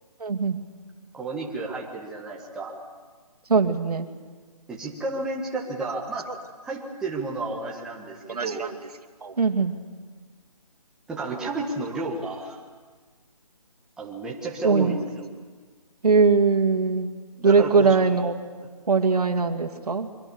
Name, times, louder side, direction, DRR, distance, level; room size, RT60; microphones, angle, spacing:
voice 1, 0.2-0.6 3.5-4.1 6.3-6.4 8.3-8.7 9.2-9.8 14.6-15.0 16.0-17.1 17.4-18.3 18.9-20.1, right 4 dB, 70° right, 5 dB, 2.4 m, -21 dB
voice 2, 1.1-2.7 4.7-6.3 6.6-8.6 11.1-12.6 14.0-15.3 17.4-17.9, right 3 dB, 5° right, -3 dB, 1.5 m, -32 dB
27.0 x 24.0 x 7.1 m, 1.5 s
hypercardioid pair, 170°, 20 cm